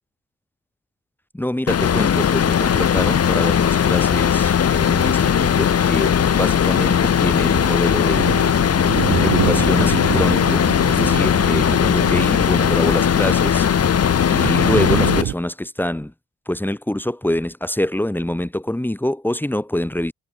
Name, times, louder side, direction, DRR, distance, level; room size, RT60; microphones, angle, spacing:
voice 1, 1.3-8.3 9.2-13.7 14.3-16.1 16.5-20.1, left 1 dB, 5° left, 3.2 m, -25 dB
sound 1, 1.7-15.2, left 8 dB, 55° left, 3.2 m, -18 dB
sound 2, 2.1-15.3, right 14 dB, 85° right, 7.8 m, -29 dB
cardioid pair, 90°, 30 cm